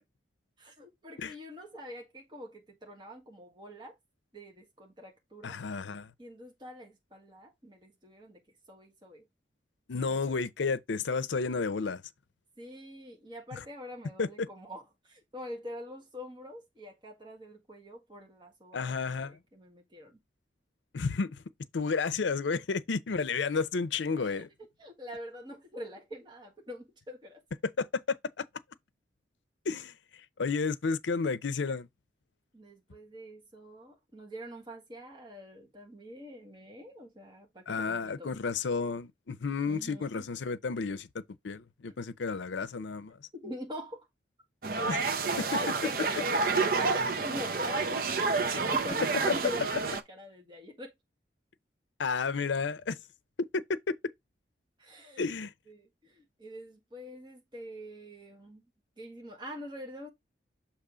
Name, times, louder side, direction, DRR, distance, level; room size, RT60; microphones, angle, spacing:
voice 1, 0.6-4.0 4.3-5.6 6.2-8.4 8.7-9.2 10.1-10.3 12.6-20.2 22.5-22.8 24.2-24.4 24.8-27.4 32.5-38.3 39.7-40.2 43.3-44.1 44.8-45.0 45.5-46.2 46.6-48.0 48.5-50.9 54.8-55.3 55.7-58.6 59.0-60.1, equal, 25° right, 1.5 m, -44 dB
voice 2, 5.4-6.1 9.9-12.0 13.5-13.6 14.2-14.5 18.7-19.4 20.9-21.4 21.7-24.5 27.8-28.4 29.6-31.9 37.7-43.2 44.9-45.0 45.4-45.5 52.0-53.0 53.5-54.0 55.2-55.5, left 4 dB, 85° left, 0.6 m, -32 dB
sound 1, 44.6-50.0, right 4 dB, 50° right, 0.6 m, -29 dB
6.8 x 2.9 x 4.9 m
head